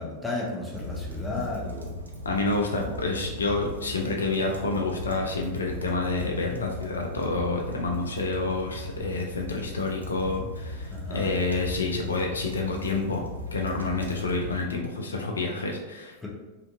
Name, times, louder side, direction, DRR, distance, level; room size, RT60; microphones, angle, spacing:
voice 1, 0.0-1.9 10.9-11.3 16.2-16.3, left 2 dB, 5° left, -4 dB, 0.6 m, -33 dB
sound 1, 0.7-14.6, left 1 dB, 80° right, 0.3 m, -38 dB
voice 2, 2.3-13.2 13.5-16.3, left 3 dB, 70° left, 1 dB, 0.3 m, -28 dB
2.5 x 2.2 x 2.5 m, 1.1 s
figure-of-eight pair, 90°, 0 cm